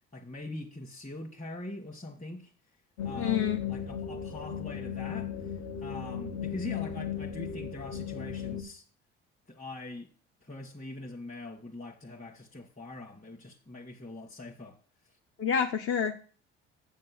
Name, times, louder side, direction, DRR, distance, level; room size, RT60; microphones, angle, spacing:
voice 1, 0.1-2.5 3.0-5.5 5.8-8.8 9.5-10.1 10.4-14.8 15.0-15.1, left 2 dB, 20° left, 1.8 m, -43 dB
sound 1, 3.0-8.6, left 8 dB, 60° left, 1.6 m, -36 dB
voice 2, 3.2-3.6 15.4-16.1, left 7 dB, 45° left, 1.1 m, -28 dB
8.0 x 6.5 x 7.8 m
hypercardioid pair, 60°, 30 cm